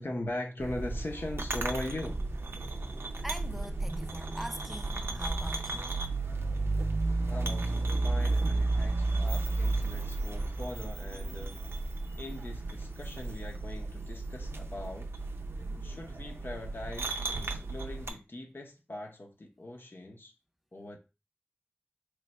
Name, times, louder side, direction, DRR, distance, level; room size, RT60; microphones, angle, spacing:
voice 1, 0.0-2.2 7.3-11.6 12.2-15.1 15.8-20.3 20.7-21.0, left 1 dB, 60° left, 0.8 m, -40 dB
sound 1, 0.6-18.1, right 2 dB, 85° right, 0.4 m, -33 dB
voice 2, 3.2-6.0, equal, 5° right, 0.4 m, -42 dB
3.2 x 2.3 x 4.1 m
wide cardioid pair, 40°, 4 cm